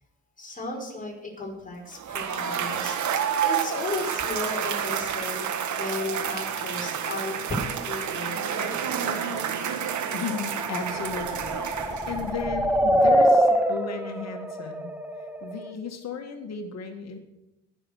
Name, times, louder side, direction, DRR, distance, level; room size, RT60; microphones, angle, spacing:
voice 1, 0.4-8.8 9.0-9.5, left 2 dB, 25° left, -1 dB, 5.2 m, -35 dB
Cheering / Applause / Crowd, 1.9-12.4, right 8 dB, 70° right, 1.7 m, -29 dB
sound 1, 9.9-15.7, right 1 dB, 5° right, 1.2 m, -25 dB
voice 2, 10.1-14.9 15.4-17.2, left 5 dB, 60° left, 4 dB, 2.1 m, -35 dB
20.0 x 7.0 x 6.5 m, 0.94 s
cardioid pair, 90°, 30 cm